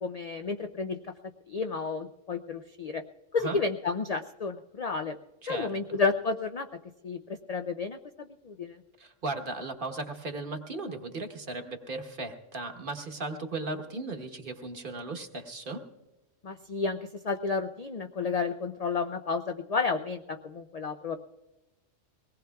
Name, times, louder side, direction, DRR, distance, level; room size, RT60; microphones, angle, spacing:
voice 1, 0.0-1.0 1.5-3.0 3.3-5.2 5.5-6.7 7.0-8.8 16.4-21.2, left 4 dB, 60° left, 7 dB, 0.4 m, -31 dB
voice 2, 5.4-6.0 9.0-15.8, right 3 dB, 45° right, 5 dB, 1.2 m, -36 dB
23.0 x 18.5 x 2.3 m, 1.0 s
omnidirectional pair, 1.3 m